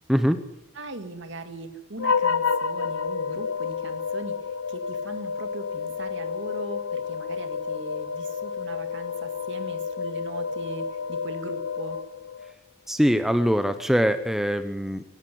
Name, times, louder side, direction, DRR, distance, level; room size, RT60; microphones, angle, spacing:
voice 1, 0.1-0.4 12.9-15.0, equal, ahead, 9 dB, 0.9 m, -22 dB
voice 2, 0.7-12.0, right 2 dB, 60° right, 8 dB, 2.1 m, -39 dB
sound 1, 2.0-12.5, left 5 dB, 75° left, 1.0 m, -30 dB
18.0 x 17.0 x 9.5 m, 0.85 s
head